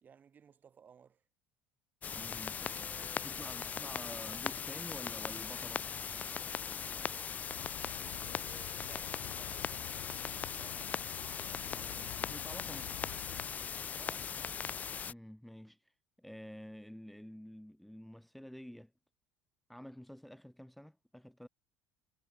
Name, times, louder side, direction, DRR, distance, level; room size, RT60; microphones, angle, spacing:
voice 1, 0.0-1.2 2.5-4.4 6.8-7.5 8.2-11.0 14.0-14.3, right 7 dB, 35° right, 2.1 m, -60 dB
sound 1, 2.0-15.1, left 7 dB, 30° left, 0.3 m, -39 dB
voice 2, 2.1-2.9 3.2-5.9 11.7-12.9 15.1-15.9 16.2-18.9 19.7-21.5, equal, ahead, 1.0 m, -49 dB
sound 2, 7.5-13.5, left 40 dB or more, 75° left, 0.7 m, -50 dB
supercardioid pair, 85°, 5 cm